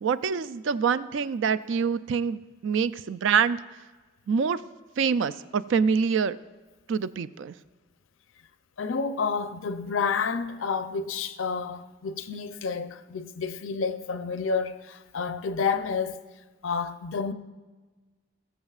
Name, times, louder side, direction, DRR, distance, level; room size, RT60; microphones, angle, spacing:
voice 1, 0.0-3.6 4.3-4.6 5.0-6.4 6.9-7.5, right 6 dB, 75° right, 0.4 m, -25 dB
voice 2, 8.8-16.2 16.6-17.3, left 5 dB, 85° left, 0.5 m, -30 dB
20.0 x 7.1 x 2.4 m
head